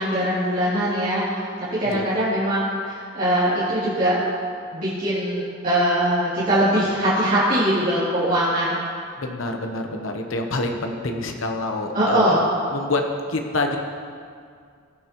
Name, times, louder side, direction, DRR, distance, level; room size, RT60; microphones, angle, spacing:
voice 1, 0.0-4.2 4.7-8.7 11.9-12.5, right 1 dB, 45° right, -12 dB, 2.8 m, -22 dB
voice 2, 9.2-12.4 12.7-13.8, left 2 dB, 75° left, 3 dB, 0.9 m, -26 dB
19.5 x 7.8 x 3.0 m, 2.2 s
head